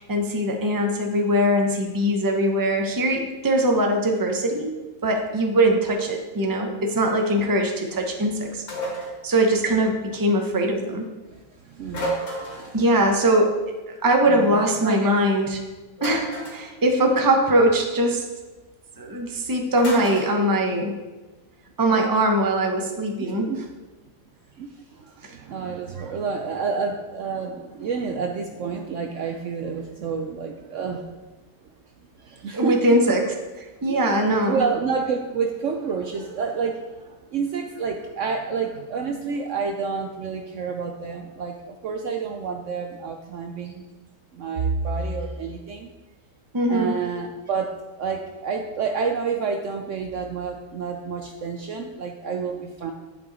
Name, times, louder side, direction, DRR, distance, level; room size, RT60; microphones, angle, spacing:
voice 1, 0.0-4.7 5.0-8.6 9.2-11.1 12.7-13.5 13.9-15.6 16.0-18.2 19.0-21.0 21.8-23.5 32.5-33.3 33.6-34.6 46.5-46.9, right 1 dB, 20° right, 2 dB, 0.5 m, -21 dB
sound 1, 8.7-9.2 11.9-12.7 16.0-16.7 19.8-20.3, equal, 65° left, 2.9 m, -30 dB
voice 2, 11.3-12.8 14.2-14.6 14.8-15.1 23.2-23.6 24.6-31.0 32.2-32.8 33.9-43.9 44.3-45.9 46.7-47.7 48.0-52.9, right 5 dB, 90° right, 4 dB, 0.6 m, -29 dB
9.8 x 5.4 x 4.1 m, 1.2 s
omnidirectional pair, 2.0 m